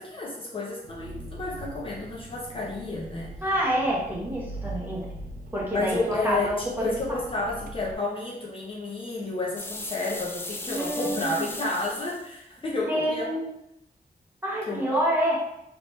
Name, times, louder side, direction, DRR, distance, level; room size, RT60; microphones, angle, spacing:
voice 1, 0.0-3.3 5.7-6.5 6.8-13.3 14.7-15.0, left 2 dB, 35° left, -4 dB, 0.7 m, -31 dB
Engine, 0.8-7.9, right 2 dB, 65° right, 0.4 m, -41 dB
voice 2, 3.4-5.1 5.5-6.9 10.7-11.4 12.9-13.5 14.4-15.4, equal, 10° right, -5 dB, 1.1 m, -27 dB
sound 1, 9.6-12.3, left 2 dB, 15° left, 0.3 m, -37 dB
3.1 x 3.0 x 3.2 m, 0.82 s
wide cardioid pair, 130°, 16 cm